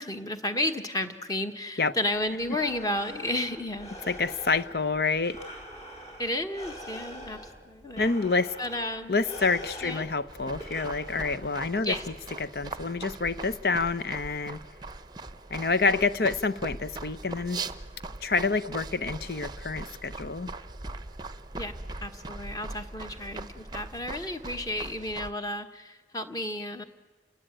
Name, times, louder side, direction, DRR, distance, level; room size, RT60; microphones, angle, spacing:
voice 1, 0.0-3.9 6.2-8.2 8.6-9.2 9.8-10.0 11.8-12.1 21.5-21.7 22.0-26.8, left 1 dB, 20° left, 7 dB, 1.5 m, -32 dB
Breathing, 2.1-11.8, equal, 40° left, 4.8 m, -45 dB
voice 2, 4.1-5.4 8.0-8.6 9.1-11.9 12.4-14.6 15.5-17.6 18.2-20.5, left 4 dB, 60° left, 14 dB, 0.8 m, -27 dB
sound 1, 10.3-25.3, right 3 dB, 25° right, 0.7 m, -40 dB
29.5 x 19.5 x 9.0 m, 1.3 s
head